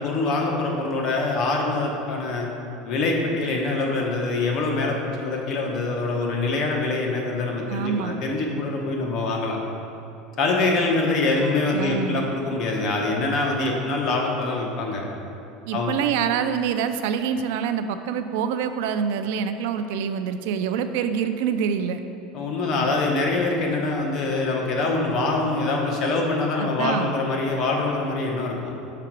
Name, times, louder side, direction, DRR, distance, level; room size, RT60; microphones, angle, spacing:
voice 1, 0.0-2.5 2.8-9.6 10.4-15.0 15.7-15.9 22.3-28.7, left 3 dB, 40° left, 0 dB, 0.9 m, -24 dB
voice 2, 7.7-8.2 11.7-12.2 15.7-22.0 26.6-27.1, right 7 dB, 75° right, 10 dB, 0.3 m, -26 dB
5.8 x 4.9 x 4.5 m, 2.9 s
cardioid pair, 155°, 0 cm